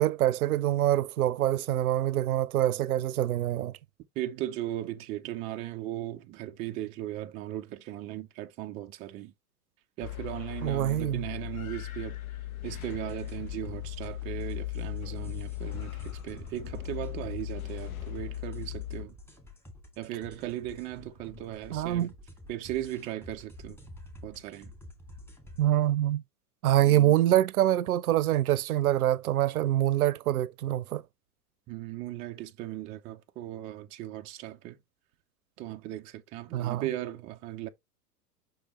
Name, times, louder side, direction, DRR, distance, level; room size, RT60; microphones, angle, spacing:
voice 1, 0.0-3.7 10.6-11.2 21.7-22.1 25.6-26.2 26.6-31.0 36.5-36.9, right 13 dB, 65° right, 0.6 m, -25 dB
voice 2, 4.2-9.3 10.0-12.2 12.6-19.1 20.0-22.1 22.5-23.8 24.2-24.7 26.8-27.1 31.7-34.8 35.6-37.7, right 14 dB, 15° right, 0.4 m, -37 dB
sound 1, 10.0-19.1, left 16 dB, 60° left, 1.3 m, -38 dB
sound 2, 12.7-25.7, left 1 dB, 5° left, 2.2 m, -49 dB
6.2 x 4.8 x 3.1 m
figure-of-eight pair, 100°, 47 cm